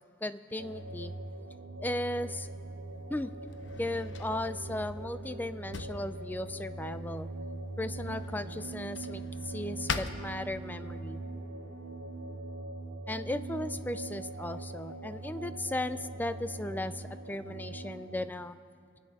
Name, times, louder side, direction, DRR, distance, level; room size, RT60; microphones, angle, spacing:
voice 1, 0.2-1.1 1.8-2.5 3.1-3.3 3.8-7.3 7.8-11.2 13.1-18.5, left 1 dB, 10° left, 13 dB, 0.4 m, -36 dB
sound 1, 0.6-18.3, right 2 dB, 85° right, 0.7 m, -41 dB
Drawer open or close, 2.3-11.0, left 5 dB, 70° left, 0.7 m, -44 dB
sound 2, 8.0-13.0, left 1 dB, 40° left, 1.8 m, -59 dB
25.5 x 10.0 x 4.2 m, 2.6 s
head